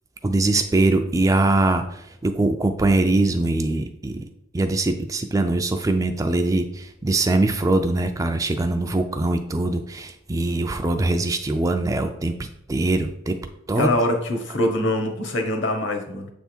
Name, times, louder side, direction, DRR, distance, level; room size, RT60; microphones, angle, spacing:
voice 1, 0.2-4.2 4.5-13.3 13.7-13.9, right 2 dB, 15° right, 7 dB, 0.3 m, -22 dB
voice 2, 13.8-16.3, left 1 dB, 60° left, 4 dB, 1.1 m, -23 dB
7.3 x 3.5 x 4.4 m, 0.79 s
head